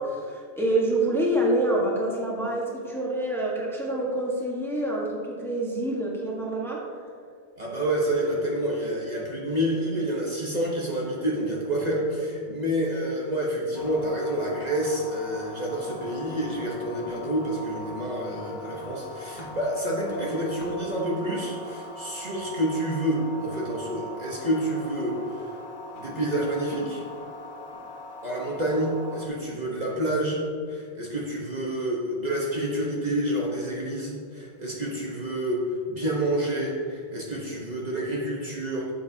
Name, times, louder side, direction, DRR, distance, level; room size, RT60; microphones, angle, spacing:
voice 1, 0.0-6.9, right 1 dB, ahead, -4 dB, 1.3 m, -27 dB
voice 2, 7.6-25.2 26.0-27.0 28.2-38.9, right 1 dB, 40° right, -4 dB, 1.2 m, -28 dB
sound 1, 13.7-29.3, left 1 dB, 50° left, 1.2 m, -41 dB
11.5 x 7.5 x 2.8 m, 2.2 s
omnidirectional pair, 1.1 m